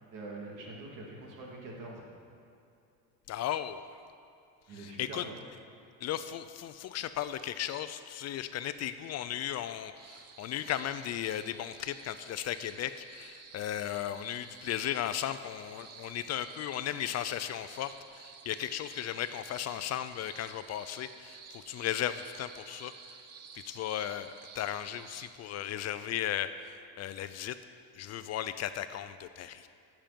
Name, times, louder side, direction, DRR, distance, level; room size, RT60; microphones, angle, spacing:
voice 1, 0.1-2.0 4.7-5.3, right 2 dB, 65° right, -2 dB, 2.8 m, -44 dB
voice 2, 3.3-3.9 4.8-5.2 6.0-22.9 23.5-27.6 27.9-29.7, left 11 dB, 50° left, 12 dB, 0.5 m, -36 dB
sound 1, 9.9-25.3, right 6 dB, 45° right, 1.0 m, -52 dB
14.0 x 7.4 x 5.2 m, 2.6 s
supercardioid pair, 100°, 35 cm